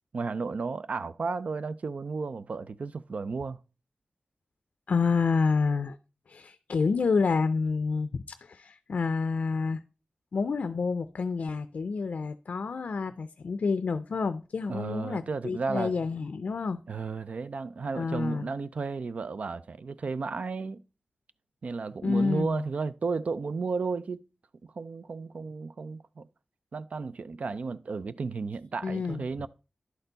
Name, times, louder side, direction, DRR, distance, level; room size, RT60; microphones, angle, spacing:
voice 1, 0.1-3.6 14.7-15.9 16.9-20.8 21.6-24.2 24.6-26.3 26.7-29.5, right 4 dB, 65° right, 0.4 m, -33 dB
voice 2, 4.9-6.0 6.3-9.8 10.3-16.8 17.9-18.5 22.0-22.7 28.8-29.5, left 4 dB, 75° left, 0.4 m, -28 dB
11.0 x 4.4 x 3.9 m
wide cardioid pair, 105°, 3 cm